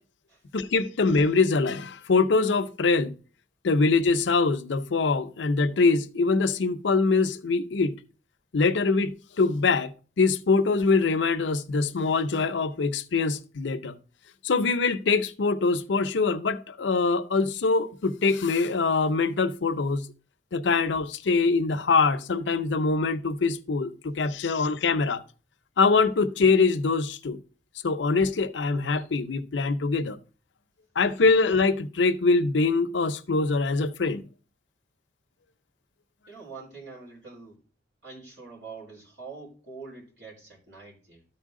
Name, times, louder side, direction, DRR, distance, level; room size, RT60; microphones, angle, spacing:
voice 1, 0.5-3.1 3.6-7.9 8.5-9.9 10.2-13.9 14.4-20.1 20.5-25.2 25.8-27.4 27.8-30.2 31.0-34.3, left 4 dB, 75° left, 0.6 m, -23 dB
voice 2, 36.3-37.6 38.0-41.3, right 4 dB, 80° right, 4.0 m, -44 dB
13.0 x 4.4 x 3.6 m
head